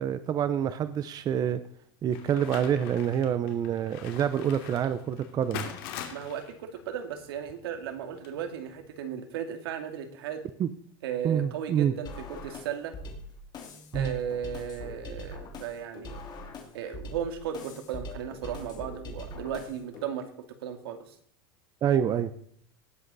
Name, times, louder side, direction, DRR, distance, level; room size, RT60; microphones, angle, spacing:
voice 1, 0.0-1.6 2.0-5.7 10.6-10.7 11.2-11.9 13.9-14.1 21.8-22.3, right 9 dB, 30° right, 13 dB, 0.7 m, -27 dB
sound 1, 2.1-8.9, left 9 dB, 70° left, 2.7 m, -43 dB
voice 2, 6.1-10.4 11.0-12.9 13.9-16.2 16.7-21.1, right 8 dB, 85° right, 7 dB, 2.2 m, -36 dB
sound 2, 12.0-20.0, left 2 dB, 35° left, 2.8 m, -42 dB
18.0 x 7.8 x 4.1 m, 0.63 s
supercardioid pair, 130°, 12 cm